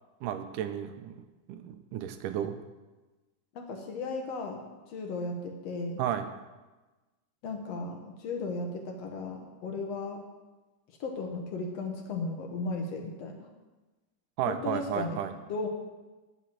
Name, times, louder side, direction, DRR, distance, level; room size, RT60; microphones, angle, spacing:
voice 1, 0.2-2.6 6.0-6.3 14.4-15.3, right 10 dB, 85° right, 9 dB, 2.3 m, -33 dB
voice 2, 3.6-6.0 7.4-10.2 11.0-13.4 14.5-15.2 15.5-15.7, left 3 dB, 65° left, 3 dB, 1.9 m, -35 dB
9.9 x 6.2 x 7.3 m, 1.2 s
omnidirectional pair, 3.7 m